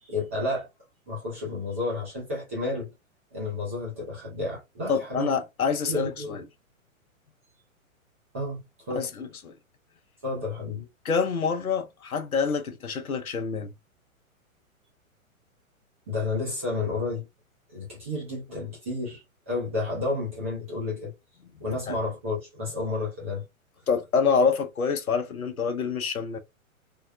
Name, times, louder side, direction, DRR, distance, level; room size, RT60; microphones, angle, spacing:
voice 1, 0.0-0.7 1.1-2.9 3.3-5.3 5.9-6.4 8.3-9.0 10.2-10.9 16.1-17.2 17.7-21.1 21.6-23.4, left 3 dB, 10° right, 0.3 m, -31 dB
voice 2, 4.9-6.4 8.9-9.5 11.0-13.7 21.9-22.0 23.9-26.4, left 5 dB, 90° left, 0.8 m, -26 dB
3.5 x 2.1 x 2.3 m
figure-of-eight pair, 120°, 42 cm